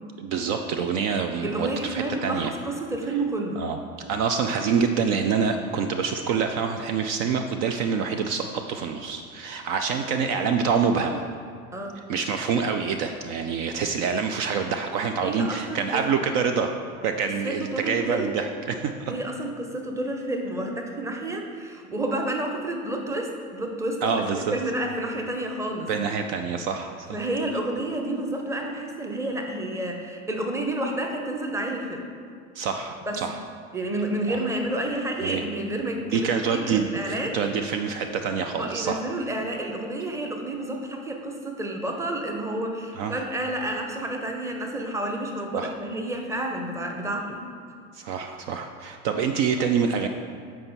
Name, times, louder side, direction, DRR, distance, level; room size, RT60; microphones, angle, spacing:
voice 1, 0.2-2.5 3.6-3.8 4.1-11.2 12.1-16.7 17.0-19.1 24.0-24.5 25.9-27.2 32.5-33.4 35.2-35.5 36.1-39.0 43.0-43.2 45.5-45.7 47.9-50.1, right 6 dB, 50° right, 6 dB, 0.5 m, -26 dB
voice 2, 1.4-3.6 11.7-12.0 15.2-16.1 17.2-18.3 19.1-25.9 27.1-32.0 33.1-33.2 33.7-37.4 38.6-47.4 47.8-47.9, right 1 dB, 5° right, 2 dB, 0.7 m, -30 dB
7.6 x 4.5 x 4.1 m, 2.2 s
hypercardioid pair, 95°, 41 cm